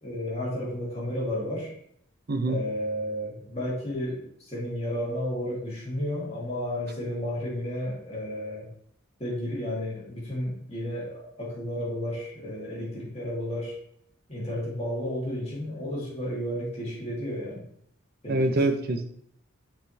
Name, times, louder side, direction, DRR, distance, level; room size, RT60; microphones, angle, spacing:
voice 1, 0.0-1.7 2.4-8.7 9.2-13.8 14.3-17.6 18.2-18.6, equal, 30° left, -5 dB, 2.7 m, -32 dB
voice 2, 2.3-2.6 18.3-19.0, right 2 dB, 45° right, 7 dB, 0.7 m, -25 dB
7.3 x 5.5 x 3.3 m, 0.68 s
head